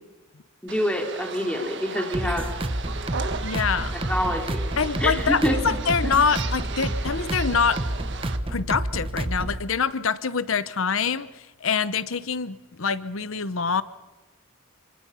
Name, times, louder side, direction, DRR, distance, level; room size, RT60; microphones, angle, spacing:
voice 1, 0.6-2.4 4.1-4.7 5.0-5.6 6.0-6.2, equal, 5° left, 1 dB, 3.1 m, -26 dB
sound 1, 0.7-8.4, right 5 dB, 55° right, 1.5 m, -36 dB
sound 2, 2.1-9.6, right 1 dB, 25° right, 1.0 m, -29 dB
voice 2, 3.4-4.0 4.8-7.8 8.5-13.8, left 5 dB, 70° left, 15 dB, 0.9 m, -25 dB
26.5 x 24.5 x 5.7 m, 1.1 s
head